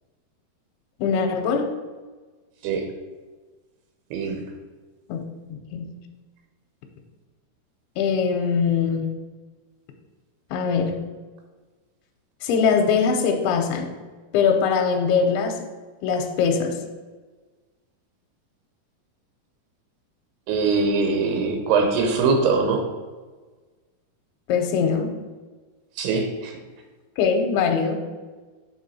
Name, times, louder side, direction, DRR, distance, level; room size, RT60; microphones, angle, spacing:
voice 1, 1.0-1.7 5.1-5.2 5.5-5.9 8.0-9.1 10.5-11.0 12.4-13.9 14.3-15.6 16.0-16.8 24.5-25.1 27.2-28.0, left 6 dB, 85° left, 3 dB, 2.6 m, -22 dB
voice 2, 4.1-4.4 20.5-22.8 26.0-26.5, right 4 dB, 85° right, 3 dB, 2.8 m, -22 dB
8.9 x 3.7 x 4.2 m, 1.3 s
omnidirectional pair, 4.7 m